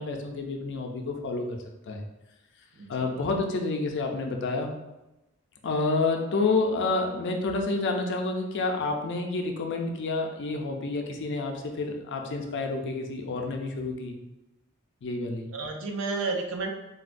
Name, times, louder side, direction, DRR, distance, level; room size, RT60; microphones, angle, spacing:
voice 1, 0.0-2.0 2.9-4.7 5.6-14.2 15.0-15.5, left 3 dB, 55° left, 2 dB, 0.4 m, -29 dB
voice 2, 2.7-3.3 15.5-16.7, right 3 dB, 65° right, 3 dB, 0.5 m, -32 dB
3.9 x 2.1 x 2.5 m, 0.99 s
head